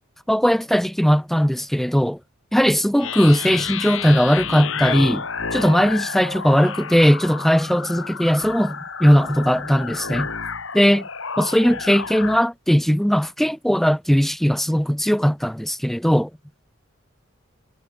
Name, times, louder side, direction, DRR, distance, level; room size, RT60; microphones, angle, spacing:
voice 1, 0.3-2.2 2.5-5.2 5.5-10.3 10.7-11.1 11.4-16.3, equal, ahead, 0.5 m, -18 dB
sound 1, 3.0-12.5, left 6 dB, 70° left, 4.1 m, -30 dB
head